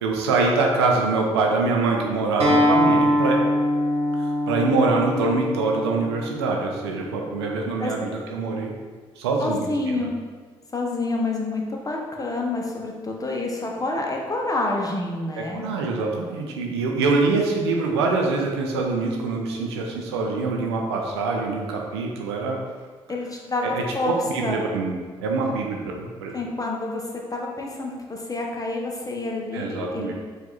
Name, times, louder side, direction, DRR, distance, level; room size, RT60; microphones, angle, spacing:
voice 1, 0.0-3.4 4.2-8.7 9.2-10.1 15.4-22.6 23.6-24.9 25.2-26.3 29.5-30.1, right 3 dB, 90° right, 0 dB, 0.5 m, -24 dB
Acoustic guitar, 2.4-7.6, left 1 dB, 50° right, 1.2 m, -23 dB
voice 2, 9.4-10.2 10.7-15.7 23.1-24.6 26.3-27.0 27.3-30.1, left 2 dB, 25° left, -1 dB, 1.0 m, -28 dB
4.7 x 2.6 x 4.0 m, 1.5 s
hypercardioid pair, 40°, 13 cm